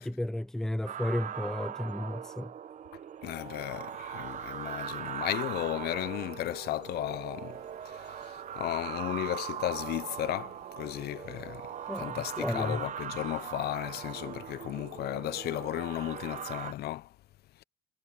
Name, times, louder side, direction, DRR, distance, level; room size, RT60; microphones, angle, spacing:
voice 1, 0.0-2.5 11.9-12.8, left 1 dB, 5° left, 0.6 m, -33 dB
sound 1, 0.9-16.7, right 9 dB, 45° right, 1.0 m, -40 dB
voice 2, 3.2-7.6 7.9-11.7 12.0-17.1, left 15 dB, 70° left, 0.8 m, -35 dB
cardioid pair, 110°, 17 cm